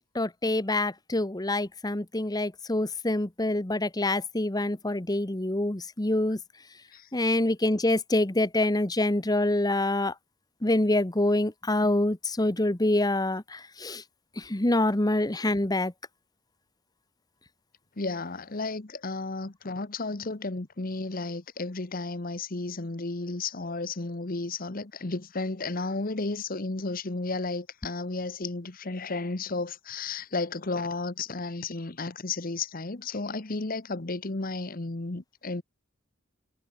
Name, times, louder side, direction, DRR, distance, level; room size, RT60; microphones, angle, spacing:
voice 1, 0.1-6.4 7.1-10.1 10.6-14.0 14.5-15.9, left 1 dB, 20° left, 1.1 m, -26 dB
voice 2, 18.0-35.6, left 3 dB, 45° left, 1.2 m, -33 dB
head